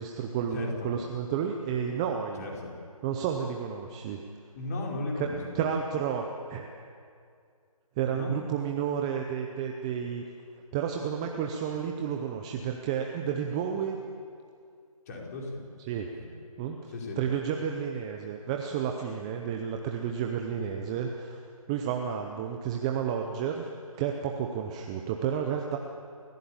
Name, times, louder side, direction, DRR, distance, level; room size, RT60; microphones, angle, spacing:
voice 1, 0.0-2.5 3.0-4.2 5.2-5.3 5.5-6.2 6.5-6.7 8.0-10.2 10.7-14.0 15.9-16.1 16.6-21.4 21.7-23.7 24.0-25.8, right 8 dB, 10° right, 3 dB, 0.6 m, -31 dB
voice 2, 2.4-2.7 4.6-5.6 8.0-8.3 15.1-15.6 16.2-16.3 16.9-17.2, left 2 dB, 25° left, -1 dB, 4.6 m, -35 dB
29.0 x 16.0 x 8.7 m, 2.3 s
figure-of-eight pair, 160°, 19 cm